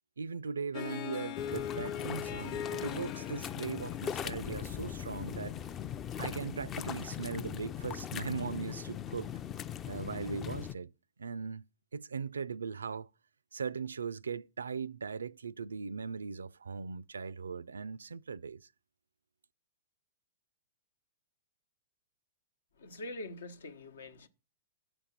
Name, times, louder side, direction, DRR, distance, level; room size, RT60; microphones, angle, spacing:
voice 1, 0.2-5.6 6.2-9.3 9.9-10.9 11.2-11.6 11.9-13.1 13.5-18.6, right 5 dB, 80° right, 0.3 m, -39 dB
Harp, 0.7-5.9, left 10 dB, 45° left, 0.9 m, -41 dB
sound 1, 1.4-10.7, left 9 dB, 25° left, 0.4 m, -40 dB
voice 2, 22.8-24.3, left 1 dB, 75° left, 1.0 m, -44 dB
7.0 x 5.2 x 7.2 m
figure-of-eight pair, 110°, 0 cm